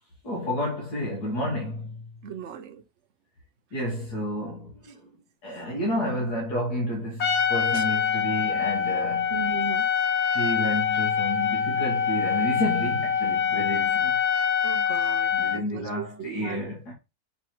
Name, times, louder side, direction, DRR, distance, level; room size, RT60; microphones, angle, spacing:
voice 1, 0.2-2.0 3.7-5.0 5.4-9.3 10.3-14.2 15.3-16.9, left 1 dB, 85° left, 2.2 m, -30 dB
voice 2, 2.2-2.8 7.7-7.8 9.3-9.9 14.6-16.6, right 6 dB, 55° right, 0.9 m, -37 dB
Trumpet, 7.2-15.6, left 7 dB, 50° left, 1.2 m, -25 dB
6.7 x 3.1 x 4.5 m
omnidirectional pair, 1.7 m